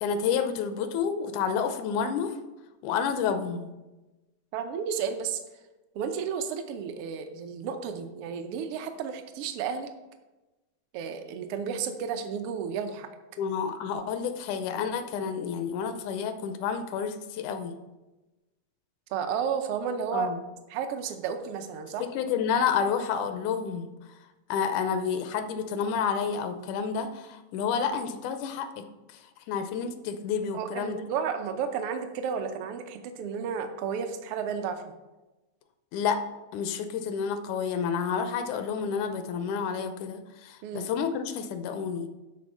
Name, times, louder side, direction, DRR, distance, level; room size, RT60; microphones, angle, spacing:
voice 1, 0.0-2.4 2.8-3.7 13.4-17.7 20.1-20.4 22.0-23.9 24.5-28.8 29.5-31.1 35.9-36.2 36.5-42.1, left 6 dB, 90° left, 9 dB, 2.2 m, -29 dB
voice 2, 4.5-5.4 5.9-9.9 10.9-13.1 19.1-20.3 20.7-22.0 30.5-34.8 40.6-40.9, right 7 dB, 75° right, 7 dB, 1.3 m, -32 dB
11.0 x 4.2 x 5.5 m, 1.1 s
omnidirectional pair, 3.4 m